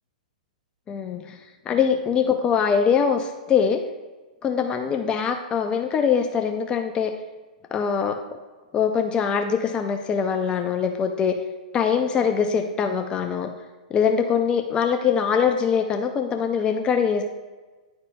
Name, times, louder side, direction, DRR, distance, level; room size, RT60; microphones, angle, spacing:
voice 1, 0.9-1.4 1.7-3.8 4.4-7.1 7.7-8.2 8.7-11.4 11.7-13.5 13.9-17.2, left 7 dB, 20° left, 5 dB, 0.4 m, -23 dB
10.5 x 4.3 x 2.2 m, 1.3 s
hypercardioid pair, 120°, 4 cm